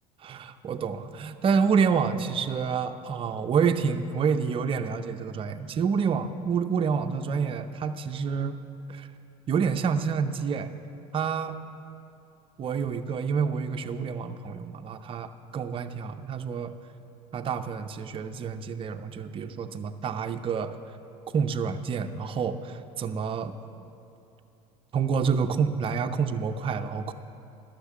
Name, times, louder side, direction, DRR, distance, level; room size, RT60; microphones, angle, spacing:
voice 1, 0.2-8.6 8.9-9.1 9.5-10.7 11.1-11.6 12.6-16.7 17.3-20.8 21.3-23.6 24.9-27.1, right 6 dB, 35° right, 7 dB, 0.6 m, -28 dB
11.5 x 6.7 x 7.4 m, 2.7 s
supercardioid pair, 95°, 15 cm